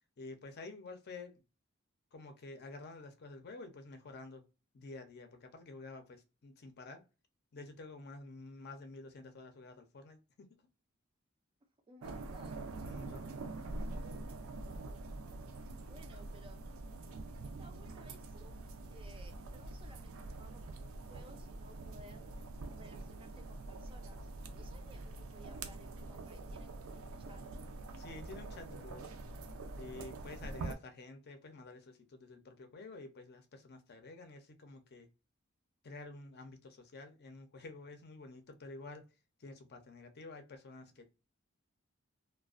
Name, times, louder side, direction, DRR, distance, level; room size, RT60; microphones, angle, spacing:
voice 1, 0.2-1.4 2.1-4.5 4.7-7.0 7.5-10.5 12.8-13.3 28.0-29.1 29.8-35.1 35.8-39.1 39.4-41.1, left 3 dB, 50° left, 0.5 m, -50 dB
voice 2, 11.9-13.0 15.9-16.7 17.4-18.6 18.9-22.3 22.8-24.2 24.5-27.4, right 1 dB, 25° right, 0.3 m, -59 dB
sound 1, 12.0-30.7, right 2 dB, 90° right, 0.4 m, -45 dB
2.4 x 2.1 x 2.4 m
head